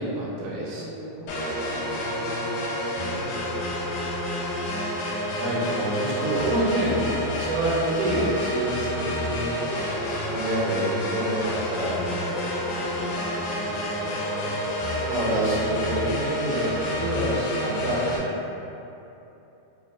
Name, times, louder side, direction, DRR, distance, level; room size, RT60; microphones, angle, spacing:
voice 1, 0.0-0.8 5.4-6.9 7.3-9.5 10.1-12.0 15.0-18.3, right 1 dB, 90° right, -6 dB, 2.5 m, -27 dB
voice 2, 0.6-3.5 6.8-7.5 9.1-10.1 11.0-11.3 12.1-14.6, equal, 70° right, -14 dB, 1.4 m, -41 dB
sound 1, 1.3-18.2, left 1 dB, 85° left, 2.3 m, -29 dB
6.0 x 2.0 x 2.4 m, 2.9 s
omnidirectional pair, 4.0 m